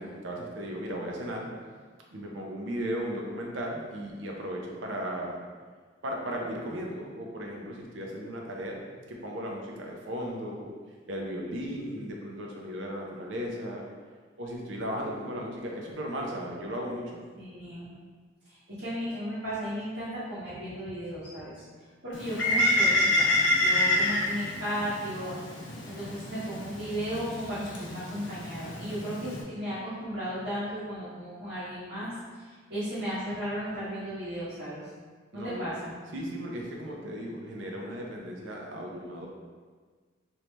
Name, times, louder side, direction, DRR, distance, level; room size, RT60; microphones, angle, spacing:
voice 1, 0.0-1.5 2.1-5.4 6.0-8.8 9.1-10.7 11.1-13.8 14.4-17.2 35.3-35.7 36.1-39.3, equal, 80° right, -1 dB, 0.6 m, -36 dB
voice 2, 17.3-17.9 18.4-25.4 25.8-34.8 35.3-35.9, equal, 60° right, -13 dB, 1.1 m, -35 dB
Bird, 22.1-29.4, left 1 dB, 75° left, 0.7 m, -28 dB
3.1 x 2.7 x 3.2 m, 1.5 s
head